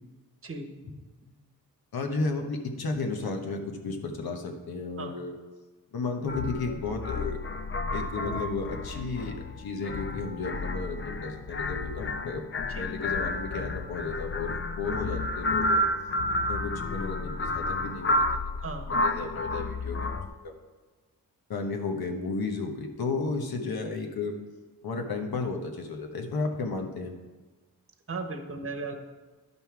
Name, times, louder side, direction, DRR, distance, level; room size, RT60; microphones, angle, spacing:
voice 1, 1.9-5.4 5.9-7.4 7.9-12.4 12.8-15.8 16.5-18.1 19.0-20.5 21.5-24.3 24.8-27.1, left 3 dB, 80° left, 4 dB, 1.2 m, -33 dB
sound 1, 6.3-20.3, left 2 dB, 35° left, 0.5 m, -31 dB
voice 2, 28.1-29.1, right 3 dB, 40° right, 6 dB, 1.1 m, -36 dB
11.0 x 5.5 x 4.7 m, 1.3 s
cardioid pair, 75°, 36 cm